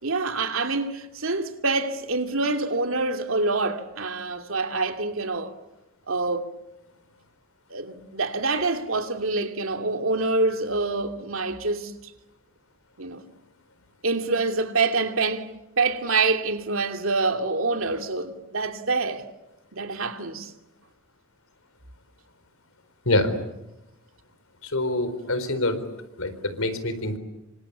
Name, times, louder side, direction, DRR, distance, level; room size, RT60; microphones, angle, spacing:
voice 1, 0.0-5.5 6.1-6.5 7.7-12.1 13.0-13.2 14.0-15.5 15.8-19.3 19.7-20.5, right 3 dB, 70° right, 2.6 m, -26 dB
voice 2, 23.1-23.4 24.6-25.8 26.2-27.2, left 2 dB, 80° left, 4.2 m, -25 dB
27.5 x 25.5 x 8.5 m
head